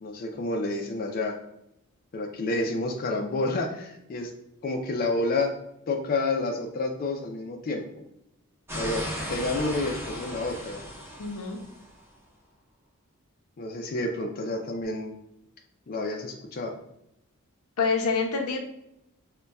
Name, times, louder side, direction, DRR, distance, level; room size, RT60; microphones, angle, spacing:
voice 1, 0.0-1.4 2.1-4.3 4.6-5.5 5.9-7.8 8.8-10.8 13.6-15.2 15.9-16.7, left 2 dB, 40° left, 1 dB, 0.4 m, -29 dB
sound 1, 8.7-11.9, equal, 10° right, 0.7 m, -36 dB
voice 2, 11.2-11.6 17.8-18.6, left 5 dB, 80° left, 4 dB, 0.6 m, -26 dB
5.2 x 2.2 x 2.2 m, 0.81 s
head